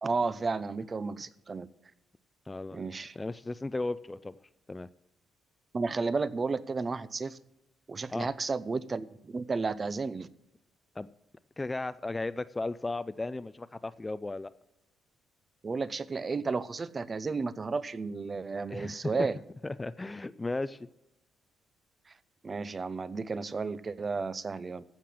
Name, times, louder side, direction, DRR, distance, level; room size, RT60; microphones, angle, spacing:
voice 1, 0.0-1.7 2.7-3.2 5.7-7.4 7.9-10.3 15.6-19.4 22.4-24.8, right 4 dB, 35° right, 16 dB, 0.7 m, -32 dB
voice 2, 2.5-4.4 4.7-4.9 8.1-8.3 11.0-11.1 11.6-14.5 18.7-19.1 19.6-20.9, left 2 dB, 20° left, 14 dB, 0.4 m, -35 dB
15.5 x 5.8 x 7.6 m, 0.92 s
cardioid pair, 90°, 0 cm